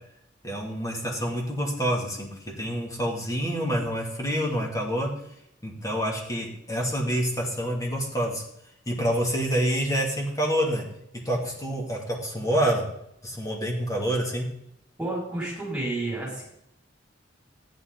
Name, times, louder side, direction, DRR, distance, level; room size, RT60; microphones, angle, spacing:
voice 1, 0.4-2.3 2.6-5.1 5.6-8.4 8.9-10.8 11.2-12.8 13.2-14.5, equal, 15° left, -1 dB, 2.7 m, -27 dB
voice 2, 15.0-16.4, right 2 dB, 5° right, -5 dB, 5.7 m, -30 dB
13.5 x 10.0 x 4.0 m, 0.78 s
head